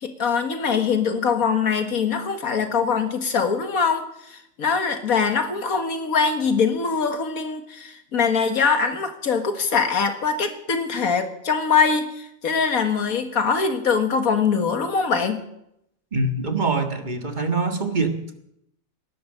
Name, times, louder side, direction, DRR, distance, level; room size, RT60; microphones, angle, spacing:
voice 1, 0.0-15.5, left 5 dB, 90° left, 7 dB, 2.1 m, -23 dB
voice 2, 16.1-18.3, right 3 dB, 35° right, 6 dB, 1.8 m, -24 dB
19.0 x 11.5 x 6.7 m, 0.79 s
omnidirectional pair, 1.4 m